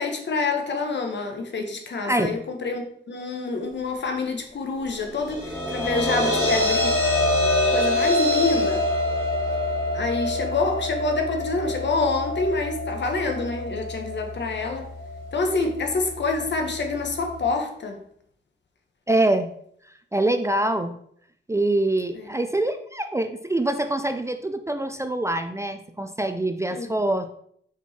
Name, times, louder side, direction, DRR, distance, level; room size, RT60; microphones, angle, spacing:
voice 1, 0.0-6.9 7.6-8.8 9.9-14.9 15.3-18.0 22.1-22.2 26.7-26.9, left 3 dB, 65° left, 4 dB, 1.2 m, -27 dB
voice 2, 2.0-2.4 19.1-19.5 20.1-20.9 21.5-27.3, right 1 dB, 15° right, 8 dB, 0.4 m, -24 dB
sound 1, 5.1-17.4, left 1 dB, 15° left, 2.1 m, -26 dB
5.8 x 4.5 x 4.3 m, 0.66 s
wide cardioid pair, 145°, 20 cm